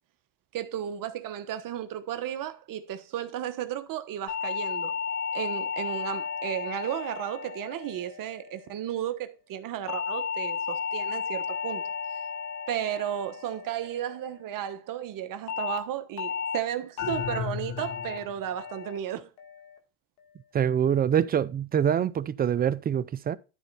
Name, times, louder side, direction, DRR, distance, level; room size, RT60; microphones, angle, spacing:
voice 1, 0.5-4.9 5.3-11.9 12.7-19.3, right 11 dB, 45° right, 1.2 m, -34 dB
sound 1, 4.3-8.7 9.9-14.3 15.5-15.8 16.2-16.6 17.0-17.4 17.8-18.2 18.6-19.0 19.4-19.8, left 6 dB, 80° left, 2.1 m, -34 dB
sound 2, 17.0-18.5, left 9 dB, 40° left, 1.4 m, -35 dB
voice 2, 20.5-23.4, right 9 dB, 20° right, 0.4 m, -25 dB
12.5 x 4.3 x 4.1 m
supercardioid pair, 110°, 45 cm